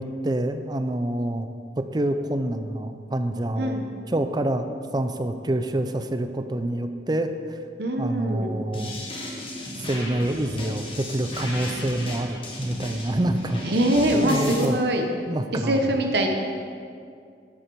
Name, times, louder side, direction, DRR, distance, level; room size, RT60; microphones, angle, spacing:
voice 1, 0.0-1.5 1.8-3.8 4.1-7.6 8.0-9.0 9.8-13.6 14.2-14.8 15.3-15.8, right 1 dB, 25° right, 8 dB, 0.5 m, -27 dB
voice 2, 7.8-8.5 13.6-15.1 15.5-16.3, right 1 dB, 60° right, 3 dB, 0.9 m, -23 dB
sound 1, 8.7-14.6, left 1 dB, 30° left, 1.4 m, -34 dB
10.0 x 8.1 x 4.6 m, 2.3 s
head